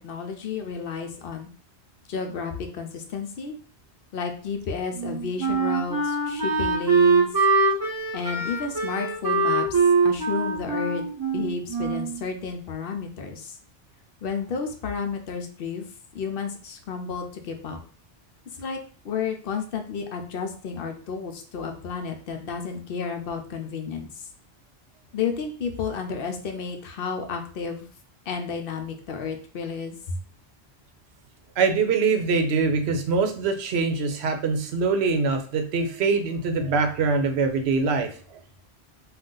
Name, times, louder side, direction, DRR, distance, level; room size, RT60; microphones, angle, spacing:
voice 1, 0.0-1.5 2.1-3.6 4.1-7.3 8.1-11.0 11.3-13.5 14.2-15.9 16.1-17.8 18.6-18.8 19.0-24.1 25.1-27.9 28.3-30.2, left 5 dB, 65° left, 5 dB, 0.7 m, -31 dB
Wind instrument woodwind instrument, 5.0-12.2, right 4 dB, 25° right, 0.6 m, -23 dB
voice 2, 31.6-38.1, right 4 dB, 85° right, 5 dB, 0.9 m, -23 dB
2.5 x 2.4 x 3.7 m, 0.43 s
omnidirectional pair, 1.1 m